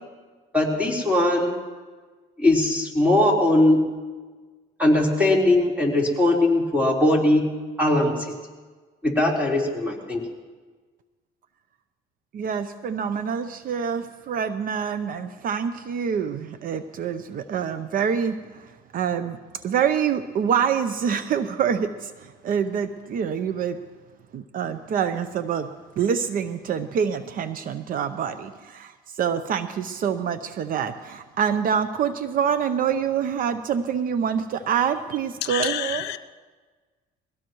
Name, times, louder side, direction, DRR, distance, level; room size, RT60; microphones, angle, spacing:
voice 1, 0.5-1.5 2.4-3.9 4.8-7.5 7.8-8.1 9.0-10.2, left 1 dB, 10° right, -3 dB, 3.9 m, -20 dB
voice 2, 12.3-18.4 18.9-19.4 19.6-23.8 24.3-25.7 26.0-28.9 29.2-36.1, right 7 dB, 55° right, 11 dB, 0.7 m, -26 dB
voice 3, 35.5-36.2, left 14 dB, 85° left, 12 dB, 0.6 m, -29 dB
22.0 x 17.0 x 3.1 m, 1.4 s
cardioid pair, 110°, 17 cm